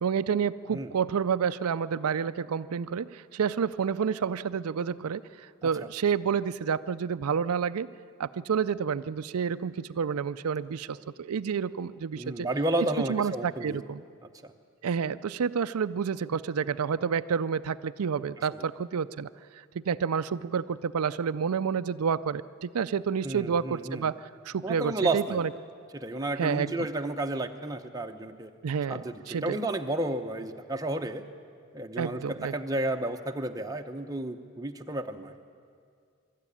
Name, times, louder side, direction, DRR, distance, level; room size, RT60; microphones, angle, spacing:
voice 1, 0.0-7.9 8.2-12.5 13.1-14.0 14.8-19.3 19.7-25.5 26.4-26.7 28.6-29.0 29.3-29.6 32.0-32.5, right 6 dB, 85° right, 13 dB, 0.4 m, -29 dB
voice 2, 12.2-13.8 14.4-14.5 18.5-18.6 23.2-24.1 24.6-25.4 25.9-28.5 28.9-31.2 31.7-35.4, right 1 dB, 15° right, 5 dB, 0.8 m, -32 dB
23.5 x 13.0 x 9.9 m, 2.2 s
head